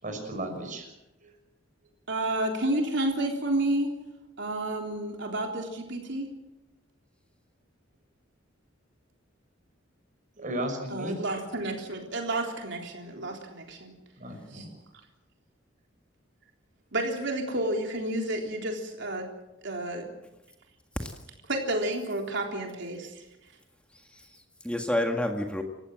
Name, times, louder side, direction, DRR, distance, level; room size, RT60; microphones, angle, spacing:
voice 1, 0.0-0.9 1.2-1.4 10.4-11.2 13.1-13.3 14.2-14.8, right 1 dB, 40° right, 4 dB, 6.4 m, -35 dB
voice 2, 2.1-3.9 4.4-6.3 10.9-13.9 14.5-14.6 16.9-19.3 19.6-20.1 21.5-23.2, right 1 dB, 65° right, 2 dB, 3.6 m, -30 dB
voice 3, 23.9-25.6, left 1 dB, 5° left, 3 dB, 1.8 m, -30 dB
28.5 x 15.5 x 7.7 m, 0.97 s
head